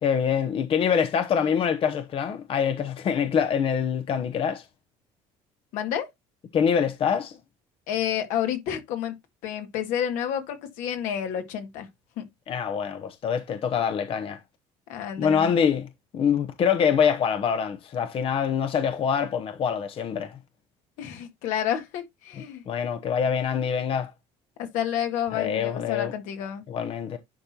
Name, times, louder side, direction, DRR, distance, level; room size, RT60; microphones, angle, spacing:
voice 1, 0.0-4.6 6.5-7.4 12.5-14.4 15.2-15.9 16.1-20.4 22.7-24.1 25.3-26.1 26.7-27.2, left 7 dB, 45° left, 0.8 m, -25 dB
voice 2, 5.7-6.1 7.9-9.1 9.4-11.9 12.2-12.3 14.9-15.5 21.0-22.6 24.6-26.6, left 9 dB, 75° left, 1.9 m, -29 dB
10.5 x 4.4 x 2.8 m
supercardioid pair, 105°, 13 cm